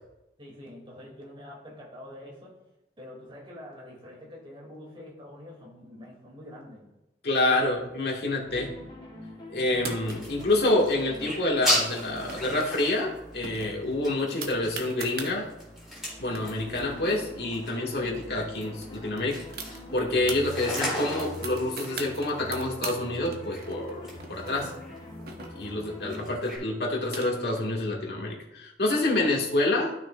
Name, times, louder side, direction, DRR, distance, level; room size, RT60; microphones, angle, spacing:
voice 1, 0.4-2.5 3.0-6.9 8.3-8.4 28.9-29.0, left 1 dB, 30° right, -2 dB, 2.5 m, -45 dB
voice 2, 7.2-8.7 9.5-15.5 16.2-19.4 19.9-24.7 25.6-29.9, left 2 dB, 60° left, -3 dB, 1.8 m, -27 dB
sound 1, 8.5-26.4, left 1 dB, 30° left, 2.1 m, -44 dB
sound 2, 9.7-26.6, left 1 dB, ahead, 3.2 m, -37 dB
sound 3, 9.7-10.4 11.9-12.7 13.0-13.1 13.4-15.3 16.0-16.1 16.3-18.1 18.4-18.5 18.8-20.4 20.8-23.0 23.3-25.9 26.7-27.6, right 4 dB, 60° right, 1.0 m, -40 dB
12.5 x 6.0 x 2.4 m, 0.92 s
head